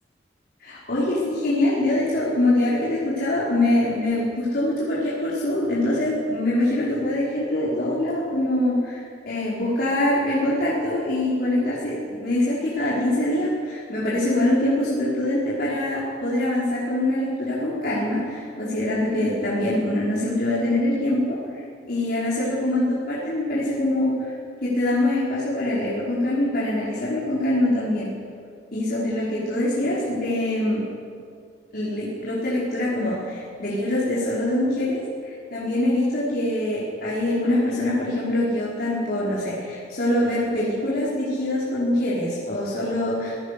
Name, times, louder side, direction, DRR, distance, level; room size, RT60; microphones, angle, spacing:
voice 1, 0.6-21.4 21.9-24.3 24.6-28.1 28.7-30.9 31.7-43.3, left 1 dB, 60° left, -8 dB, 5.2 m, -24 dB
25.5 x 17.5 x 6.9 m, 2.3 s
head